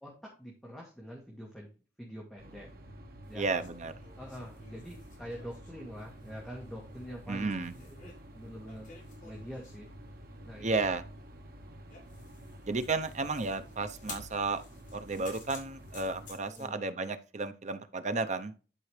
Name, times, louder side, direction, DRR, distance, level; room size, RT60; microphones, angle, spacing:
voice 1, 0.0-1.7 2.0-2.7 3.3-3.5 4.2-7.5 7.8-8.9 9.2-9.9 10.5-10.7 16.4-16.8, equal, 5° left, -2 dB, 1.9 m, -45 dB
sound 1, 2.4-16.3, equal, 60° right, 1.6 m, -50 dB
sound 2, 3.2-9.9 10.9-16.7, left 4 dB, 45° left, 3.6 m, -53 dB
voice 2, 3.4-3.9 7.3-7.7 10.6-11.1 12.7-14.6 14.9-18.5, right 3 dB, 45° right, 10 dB, 0.8 m, -33 dB
11.0 x 4.8 x 3.3 m, 0.34 s
head